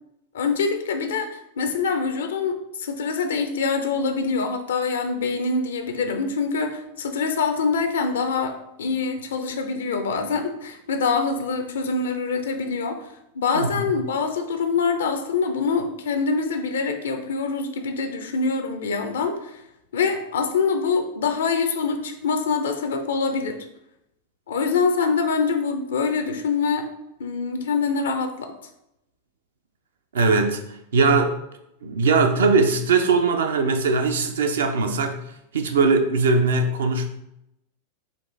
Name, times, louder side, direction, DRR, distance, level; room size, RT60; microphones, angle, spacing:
voice 1, 0.3-13.0 13.3-19.6 19.9-23.6 24.5-26.9 27.2-28.5, left 4 dB, 60° left, 6 dB, 0.5 m, -25 dB
voice 2, 30.1-31.4 31.8-35.2 35.5-37.1, right 4 dB, 65° right, 6 dB, 0.5 m, -20 dB
4.1 x 2.5 x 3.2 m, 0.83 s
figure-of-eight pair, 90°, 0 cm